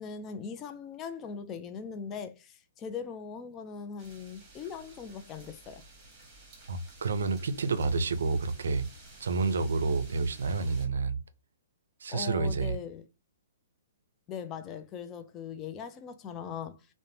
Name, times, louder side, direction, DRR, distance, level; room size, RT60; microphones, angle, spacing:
voice 1, 0.0-5.8 12.1-13.0 14.3-16.9, left 6 dB, 20° left, 0.3 m, -40 dB
sound 1, 4.0-10.9, right 2 dB, 20° right, 1.2 m, -53 dB
voice 2, 6.7-8.9 9.2-11.2 12.0-12.8, right 4 dB, 80° right, 0.4 m, -29 dB
3.1 x 2.1 x 2.7 m
hypercardioid pair, 150°, 0 cm